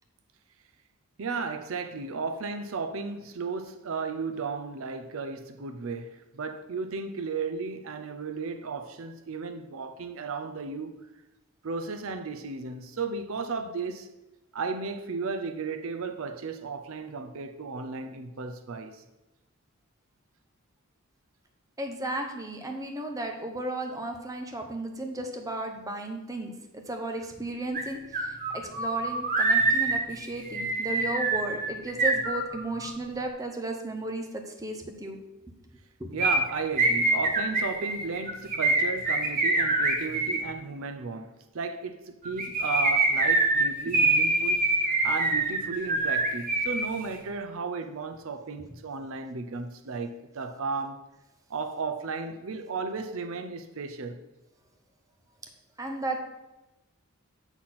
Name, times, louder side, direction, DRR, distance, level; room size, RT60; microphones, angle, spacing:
voice 1, 1.2-10.9 11.6-14.1 14.5-19.0 36.1-51.0 51.5-54.2, right 4 dB, 65° right, 8 dB, 0.5 m, -34 dB
voice 2, 21.8-35.2 36.0-36.2 55.8-56.2, right 2 dB, 15° right, 3 dB, 0.8 m, -34 dB
sound 1, 27.7-27.8 28.1-32.9 36.2-40.4 42.2-46.9 47.1-47.2, right 2 dB, 40° right, 1.1 m, -25 dB
7.9 x 4.3 x 5.8 m, 1.0 s
head